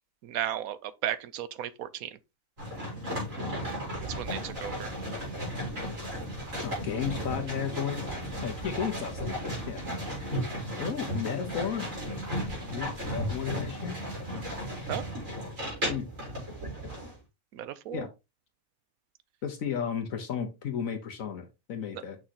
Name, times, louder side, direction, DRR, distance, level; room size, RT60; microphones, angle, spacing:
voice 1, 0.2-2.2 4.0-4.9 14.9-15.0 17.5-18.0, right 11 dB, 80° right, 1.1 m, -35 dB
sound 1, 2.6-17.1, equal, 65° right, 4.6 m, -35 dB
voice 2, 6.6-8.1 8.4-9.8 10.8-11.9 12.7-13.9 15.9-16.1 17.9-18.1 19.4-22.2, left 8 dB, 70° left, 1.3 m, -33 dB
6.3 x 6.2 x 2.9 m
omnidirectional pair, 1.5 m